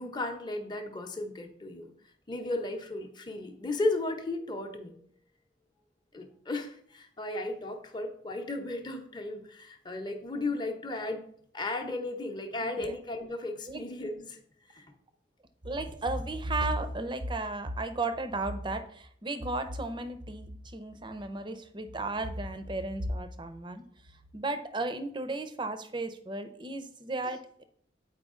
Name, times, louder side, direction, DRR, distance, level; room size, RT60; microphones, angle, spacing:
voice 1, 0.0-1.9 2.3-5.0 6.1-11.2 11.5-14.4 14.7-14.9 27.2-27.4, left 2 dB, 25° left, 3 dB, 0.8 m, -35 dB
voice 2, 12.6-12.9 13.7-13.8 15.6-23.8 24.3-27.6, right 2 dB, 25° right, 8 dB, 0.6 m, -34 dB
8.1 x 4.6 x 3.7 m, 0.63 s
head